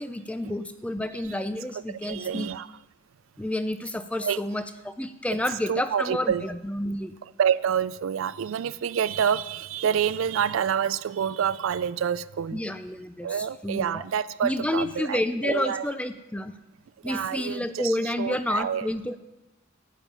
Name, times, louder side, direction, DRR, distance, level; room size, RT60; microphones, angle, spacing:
voice 1, 0.0-2.5 3.4-7.1 12.5-14.0 14.4-16.5 17.0-19.2, left 1 dB, 5° left, 0.4 m, -30 dB
voice 2, 2.0-2.7 4.2-4.4 5.3-5.4 5.7-6.4 7.4-12.6 13.2-15.9 17.0-18.9, right 8 dB, 75° right, 0.4 m, -27 dB
11.5 x 9.0 x 5.4 m
head